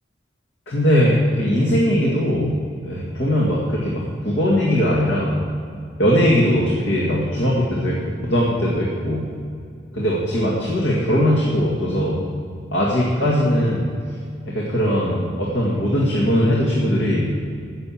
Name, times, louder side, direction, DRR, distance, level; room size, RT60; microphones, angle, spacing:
voice 1, 0.7-2.5 2.8-5.3 6.0-9.3 9.9-12.2 12.7-13.9 14.5-17.3, equal, 70° left, -4 dB, 2.1 m, -20 dB
15.5 x 6.8 x 7.5 m, 2.3 s
head